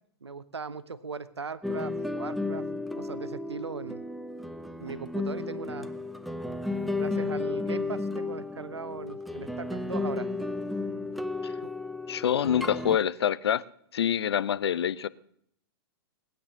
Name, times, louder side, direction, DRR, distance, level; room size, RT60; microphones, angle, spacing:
voice 1, 0.2-2.7 2.9-4.0 4.8-5.9 7.0-10.3 11.6-11.7, right 5 dB, 90° right, 1.0 m, -39 dB
sound 1, 1.6-13.0, left 3 dB, ahead, 0.8 m, -33 dB
voice 2, 12.1-13.6 13.9-15.1, left 9 dB, 75° left, 0.7 m, -26 dB
19.5 x 8.8 x 7.5 m
hypercardioid pair, 110°, 14 cm